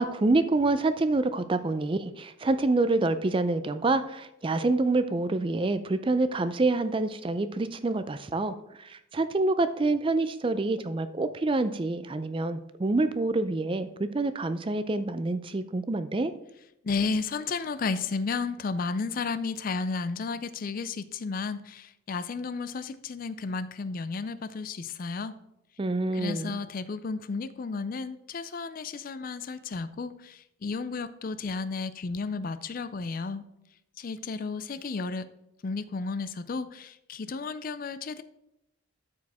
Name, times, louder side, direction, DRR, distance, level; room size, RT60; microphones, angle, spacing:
voice 1, 0.0-16.3 25.8-26.6, right 2 dB, 25° right, 11 dB, 0.4 m, -27 dB
voice 2, 16.8-25.3 26.1-33.5 34.0-35.3 35.6-38.2, left 4 dB, 40° left, 12 dB, 0.4 m, -33 dB
13.0 x 4.9 x 3.5 m, 0.84 s
head